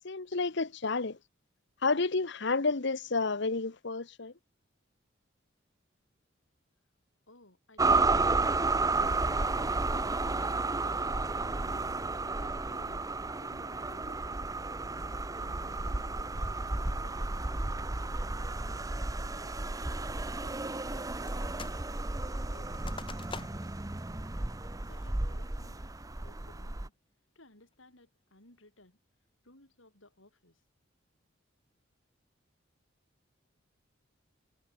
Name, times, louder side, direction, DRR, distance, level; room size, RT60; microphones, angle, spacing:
voice 1, 0.0-1.1 1.8-4.3, left 3 dB, 60° left, 1.1 m, -30 dB
voice 2, 7.3-8.7 11.3-13.1 13.4-14.5 15.3-17.9 18.5-18.9 19.2-21.8 22.2-24.0 24.8-25.9 26.2-26.9 27.4-29.0 29.4-30.6, left 1 dB, 75° left, 7.3 m, -59 dB
sound 1, 7.8-26.9, right 3 dB, 15° right, 0.8 m, -32 dB
sound 2, 21.3-21.8 22.1-23.8 24.3-24.4 24.9-25.3 25.8-26.2, left 4 dB, 25° left, 2.2 m, -46 dB
head